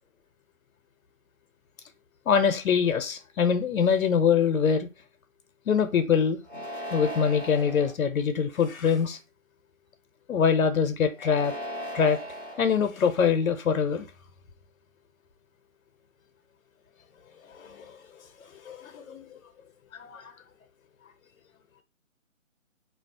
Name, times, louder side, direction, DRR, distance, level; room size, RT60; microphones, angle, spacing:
voice 1, 2.3-4.9 5.7-6.4 6.9-9.2 10.3-11.5 11.9-12.2 12.6-14.1 17.5-17.9 18.5-19.2 19.9-20.3, left 6 dB, 85° left, 0.6 m, -24 dB
sound 1, 6.4-7.9 8.6-9.2 11.1-12.6, equal, 40° left, 0.6 m, -37 dB
2.4 x 2.0 x 2.5 m
hypercardioid pair, 180°, 40 cm